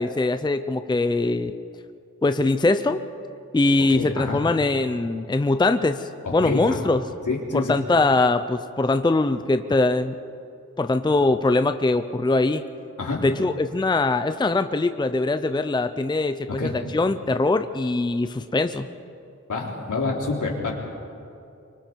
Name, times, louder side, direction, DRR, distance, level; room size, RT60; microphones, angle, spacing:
voice 1, 0.0-1.5 2.2-3.0 3.5-7.0 7.5-10.2 10.8-12.6 13.2-18.9, left 2 dB, 15° left, 9 dB, 0.6 m, -22 dB
voice 2, 3.9-4.4 6.2-6.9 7.3-7.7 13.0-13.3 16.5-16.7 19.5-20.7, left 3 dB, 75° left, -1 dB, 3.7 m, -27 dB
25.5 x 24.0 x 4.6 m, 2.6 s
wide cardioid pair, 130°, 31 cm